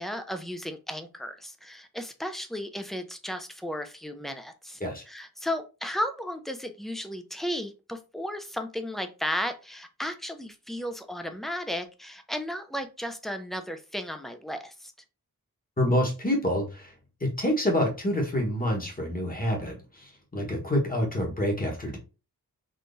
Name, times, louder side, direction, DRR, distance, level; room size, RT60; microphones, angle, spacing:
voice 1, 0.0-4.8 5.1-14.9, equal, ahead, 7 dB, 0.4 m, -34 dB
voice 2, 15.8-16.9 17.2-22.0, left 1 dB, 25° left, 0 dB, 1.2 m, -27 dB
3.7 x 2.8 x 2.5 m, 0.31 s
wide cardioid pair, 90°, 36 cm